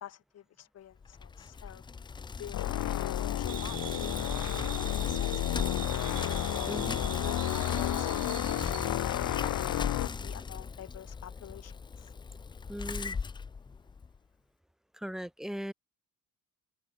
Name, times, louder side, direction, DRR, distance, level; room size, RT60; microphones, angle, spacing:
voice 1, 0.0-1.8 2.4-2.7 2.9-4.3 5.0-6.1 6.8-9.2 10.0-12.1, left 11 dB, 45° left, 2.6 m, -49 dB
Bicycle, 1.0-14.2, left 5 dB, 15° left, 0.4 m, -38 dB
sound 1, 2.5-10.1, left 15 dB, 65° left, 2.5 m, -32 dB
sound 2, 3.5-8.9, right 15 dB, 70° right, 3.7 m, -43 dB
voice 2, 6.7-7.0 12.7-13.2 14.9-15.7, equal, ahead, 1.0 m, -38 dB
open air
cardioid pair, 155°, 34 cm